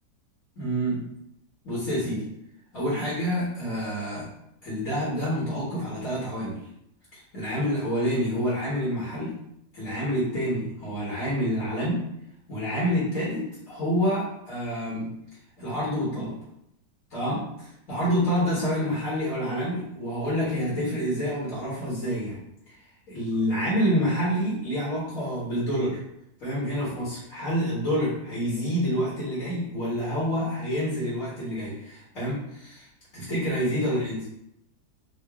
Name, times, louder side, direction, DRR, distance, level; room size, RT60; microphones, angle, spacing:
voice 1, 0.6-1.1 1.6-2.3 2.7-4.3 4.6-6.6 7.1-9.4 9.7-12.0 12.5-15.1 15.6-16.3 17.1-22.8 23.1-26.0 26.4-32.9 33.1-34.3, equal, 55° left, -8 dB, 1.7 m, -28 dB
3.8 x 2.6 x 3.4 m, 0.78 s
omnidirectional pair, 1.8 m